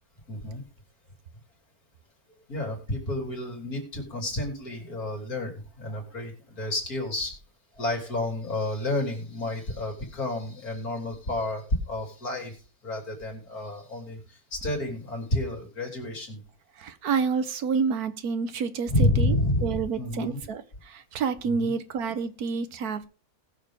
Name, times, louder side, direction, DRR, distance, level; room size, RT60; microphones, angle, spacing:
voice 1, 0.3-0.6 2.5-7.3 7.8-12.6 12.8-16.4 18.9-20.4 21.4-21.7, left 1 dB, 80° left, 1 dB, 4.0 m, -30 dB
voice 2, 16.8-19.4 19.6-23.1, right 5 dB, 90° right, 12 dB, 1.5 m, -29 dB
19.5 x 6.8 x 3.7 m, 0.38 s
omnidirectional pair, 1.5 m